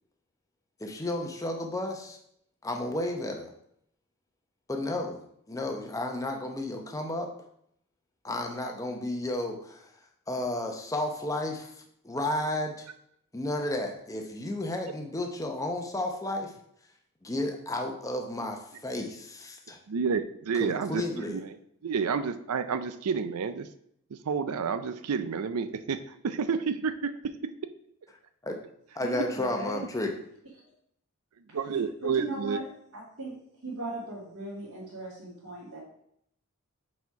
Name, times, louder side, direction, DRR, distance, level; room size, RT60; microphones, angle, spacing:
voice 1, 0.8-2.2 2.6-3.5 4.7-5.2 5.5-7.3 8.2-9.9 10.3-12.9 13.3-16.5 17.2-19.8 20.5-21.4 28.4-28.6 28.9-30.1, left 1 dB, 15° left, 3 dB, 0.8 m, -32 dB
voice 2, 19.9-21.6 21.8-23.7 24.1-27.5 31.4-32.6, right 6 dB, 85° right, 11 dB, 0.5 m, -30 dB
voice 3, 29.0-29.8 31.7-32.6 32.9-33.4 33.6-35.8, right 2 dB, 70° right, -12 dB, 2.5 m, -37 dB
6.9 x 4.3 x 4.6 m, 0.72 s
head